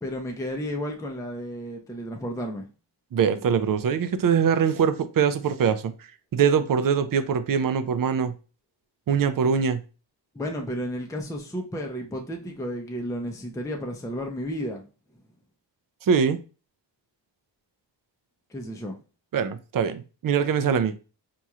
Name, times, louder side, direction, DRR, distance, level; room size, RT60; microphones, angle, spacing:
voice 1, 0.0-2.7 10.3-14.8 18.5-19.0, equal, 5° left, 0.5 m, -32 dB
voice 2, 3.1-5.9 6.3-8.3 9.1-9.8 16.1-16.4 19.3-21.0, right 7 dB, 50° right, 0.5 m, -23 dB
4.2 x 3.0 x 2.4 m
wide cardioid pair, 85°, 45 cm